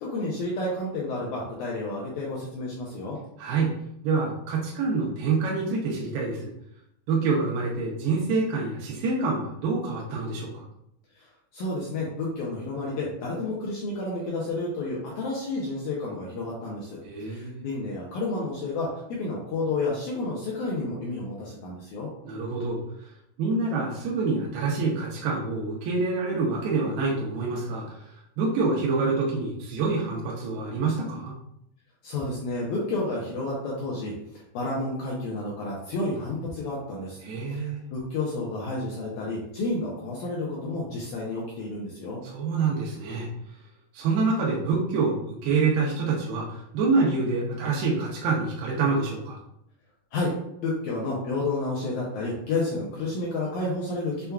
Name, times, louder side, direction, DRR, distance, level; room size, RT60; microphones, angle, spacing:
voice 1, 0.0-3.2 11.2-11.3 11.5-22.1 32.0-34.1 34.5-37.2 37.5-42.2 50.1-50.3 50.6-54.3, left 2 dB, 85° left, -4 dB, 1.7 m, -30 dB
voice 2, 4.0-6.5 7.1-10.6 17.0-17.6 22.3-23.1 23.4-31.3 37.2-37.8 42.2-43.3 43.9-49.4, right 4 dB, 85° right, -3 dB, 2.6 m, -26 dB
6.6 x 2.3 x 2.3 m, 0.77 s
omnidirectional pair, 4.3 m